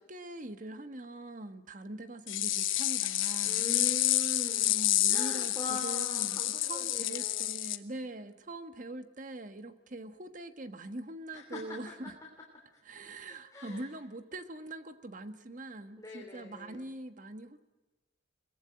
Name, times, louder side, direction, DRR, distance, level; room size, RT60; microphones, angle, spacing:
voice 1, 0.1-3.7 4.7-12.1 12.8-17.6, right 2 dB, 40° right, 10 dB, 1.4 m, -43 dB
sound 1, 2.3-7.8, left 14 dB, 90° left, 1.3 m, -29 dB
voice 2, 3.4-7.5 11.3-11.8 13.5-13.9 16.0-16.9, left 1 dB, 15° left, -1 dB, 3.2 m, -42 dB
22.5 x 21.0 x 8.8 m, 1.2 s
head